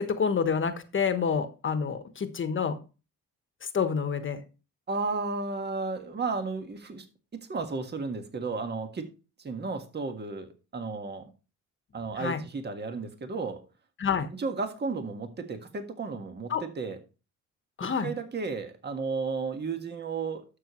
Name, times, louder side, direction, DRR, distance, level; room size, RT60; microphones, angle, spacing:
voice 1, 0.0-2.8 3.6-4.4 12.2-12.4 14.0-14.3 16.5-16.6 17.8-18.1, left 6 dB, 40° left, 9 dB, 1.3 m, -28 dB
voice 2, 4.9-7.1 7.3-9.1 9.4-11.3 11.9-13.6 14.3-17.0 17.8-20.4, right 4 dB, 35° right, 6 dB, 1.6 m, -33 dB
12.0 x 6.8 x 3.1 m, 0.32 s
cardioid pair, 90°, 30 cm